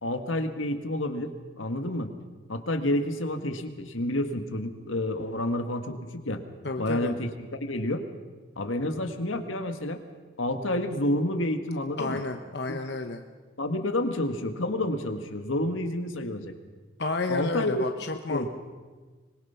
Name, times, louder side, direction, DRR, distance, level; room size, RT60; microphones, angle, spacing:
voice 1, 0.0-2.1 2.5-6.4 6.8-8.0 8.6-10.0 10.4-12.2 13.6-16.5 17.3-17.8 18.3-18.5, left 1 dB, 90° left, 6 dB, 1.9 m, -29 dB
voice 2, 6.6-7.1 12.0-13.2 17.0-18.5, left 3 dB, 55° left, 5 dB, 1.0 m, -31 dB
25.0 x 21.5 x 5.8 m, 1.4 s
head